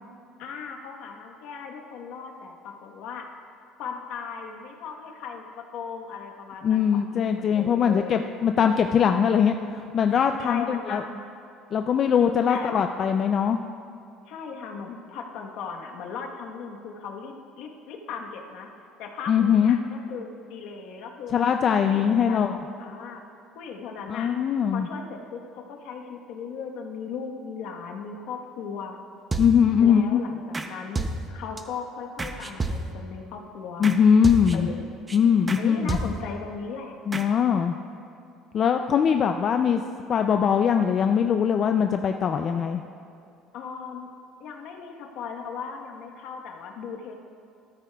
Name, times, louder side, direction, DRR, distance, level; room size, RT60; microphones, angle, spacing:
voice 1, 0.4-3.3 3.8-6.8 7.1-8.2 10.4-11.2 12.5-12.7 14.3-18.7 19.0-21.4 21.8-23.2 23.5-24.4 24.7-29.0 29.8-33.9 34.5-34.9 35.6-37.0 43.5-44.1 44.4-47.1, left 5 dB, 65° left, 2 dB, 1.1 m, -37 dB
voice 2, 6.6-11.0 11.7-13.6 19.3-19.8 21.3-22.6 24.1-24.9 29.4-30.2 33.8-34.7 35.1-36.0 37.1-37.8 38.5-39.8 40.1-42.8, left 7 dB, 35° left, 6 dB, 0.3 m, -21 dB
sound 1, 29.3-29.8 30.5-30.7 30.9-31.6 32.2-33.1 33.8-34.0 34.2-34.8 35.1-35.2 35.5-35.6 35.9-36.4 37.1-37.3, right 2 dB, 15° right, 0.6 m, -30 dB
14.0 x 13.0 x 2.3 m, 2.5 s
cardioid pair, 155°, 0 cm